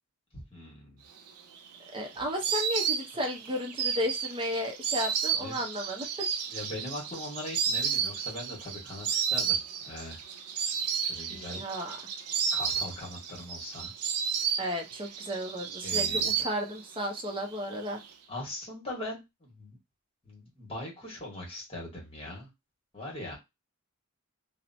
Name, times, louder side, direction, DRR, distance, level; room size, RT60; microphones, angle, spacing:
voice 1, 0.3-1.0 5.4-5.6 6.5-9.6 9.8-10.2 10.6-10.7 11.0-11.7 12.5-13.9 15.8-16.3 18.3-19.8 20.2-22.5 22.9-23.4, left 1 dB, 25° left, -3 dB, 1.3 m, -41 dB
Insect, 1.3-17.0 17.2-18.1, right 7 dB, 85° right, 0.5 m, -32 dB
voice 2, 1.9-6.3 11.3-12.0 14.6-18.0, equal, 25° right, 1 dB, 0.6 m, -34 dB
2.9 x 2.1 x 2.6 m, 0.22 s
head